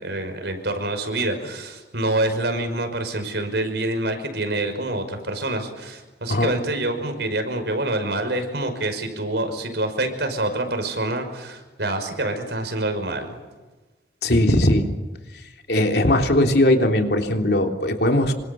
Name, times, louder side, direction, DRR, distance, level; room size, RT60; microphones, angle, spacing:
voice 1, 0.0-13.4, right 2 dB, 70° right, 7 dB, 5.6 m, -26 dB
voice 2, 14.2-14.9 15.7-18.3, left 1 dB, 60° left, 4 dB, 3.4 m, -19 dB
27.5 x 25.5 x 7.2 m, 1.2 s
head